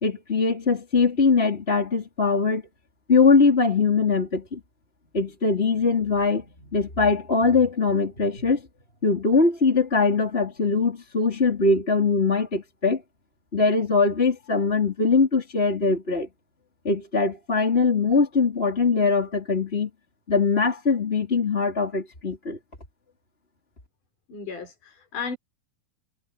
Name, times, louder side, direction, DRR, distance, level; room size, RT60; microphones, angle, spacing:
voice 1, 0.0-2.6 3.1-4.6 5.1-8.6 9.0-13.0 13.5-16.3 16.8-19.9 20.3-22.6, left 4 dB, 15° left, 3.2 m, -22 dB
voice 2, 24.3-25.4, left 5 dB, 40° left, 6.4 m, -34 dB
omnidirectional pair, 5.6 m